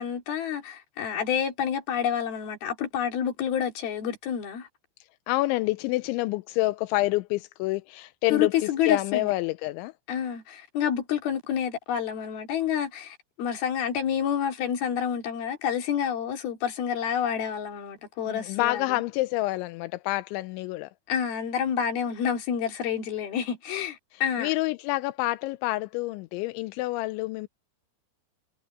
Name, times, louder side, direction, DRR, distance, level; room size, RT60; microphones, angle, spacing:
voice 1, 0.0-4.7 8.3-9.3 10.1-19.0 21.1-24.5, left 8 dB, 55° left, 4.4 m, -28 dB
voice 2, 5.3-8.5 8.9-9.9 18.3-20.9 24.4-27.5, left 19 dB, 85° left, 2.9 m, -27 dB
omnidirectional pair, 5.5 m